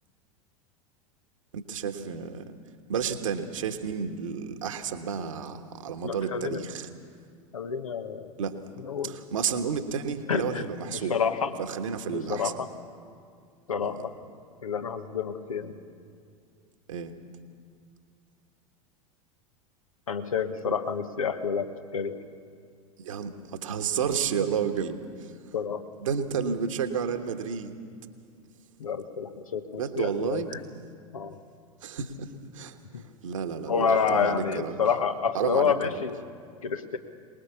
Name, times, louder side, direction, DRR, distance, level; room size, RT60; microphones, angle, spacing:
voice 1, 1.5-2.4 2.9-6.9 8.4-8.6 9.0-11.2 11.7-12.5 13.8-14.0 15.6-15.7 16.9-17.1 20.7-20.8 23.0-25.3 26.0-27.8 29.7-30.5 31.8-34.8 35.3-35.7, right 7 dB, 65° right, 7 dB, 1.5 m, -31 dB
voice 2, 6.0-6.6 7.5-8.3 8.8-9.1 10.3-11.5 12.1-12.6 13.7-14.1 14.6-15.7 20.1-22.2 25.5-25.8 28.8-30.6 31.1-31.4 32.9-33.0 33.7-36.2 36.6-37.0, left 6 dB, 70° left, 8 dB, 1.3 m, -29 dB
23.5 x 20.0 x 7.1 m, 2.2 s
figure-of-eight pair, 85°, 18 cm